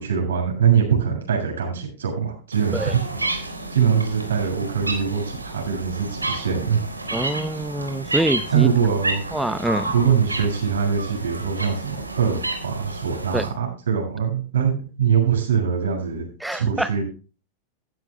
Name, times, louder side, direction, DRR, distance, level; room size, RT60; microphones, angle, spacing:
voice 1, 0.0-6.8 7.5-7.6 8.5-9.2 9.9-16.3 16.5-17.0, right 7 dB, 65° right, 0 dB, 7.2 m, -23 dB
sound 1, 2.5-13.5, right 2 dB, 80° right, 3.3 m, -31 dB
voice 2, 7.1-8.7 9.3-9.9 13.3-13.4 16.4-16.9, right 1 dB, 5° right, 13 dB, 0.8 m, -25 dB
15.0 x 15.0 x 2.2 m, 0.35 s
figure-of-eight pair, 90°, 0 cm